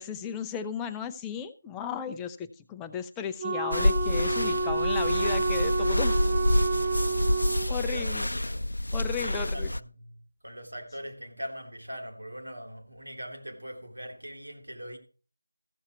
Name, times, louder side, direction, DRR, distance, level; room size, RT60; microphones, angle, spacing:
voice 1, 0.0-6.2 7.7-8.3 8.9-9.7, left 7 dB, 10° left, 0.4 m, -35 dB
Wind instrument woodwind instrument, 3.4-7.7, right 3 dB, 35° right, 0.8 m, -29 dB
sound 1, 3.7-9.8, left 1 dB, 90° left, 0.5 m, -27 dB
voice 2, 7.6-8.3 9.2-15.0, equal, 85° right, 3.3 m, -41 dB
15.0 x 7.2 x 4.5 m
figure-of-eight pair, 165°, 0 cm